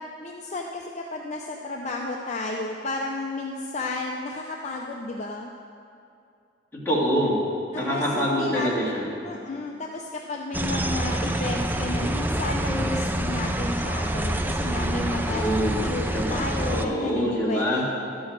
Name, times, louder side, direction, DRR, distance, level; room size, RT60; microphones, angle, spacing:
voice 1, 0.0-5.5 7.7-8.7 9.2-15.5 15.8-17.8, left 2 dB, 40° left, 0 dB, 0.6 m, -32 dB
voice 2, 6.7-7.4 7.7-9.1 15.3-15.8 16.1-16.4 16.7-17.8, equal, 15° left, -7 dB, 2.4 m, -25 dB
sound 1, 10.5-16.8, right 1 dB, 10° right, 0.4 m, -27 dB
12.0 x 6.2 x 7.4 m, 2.5 s
head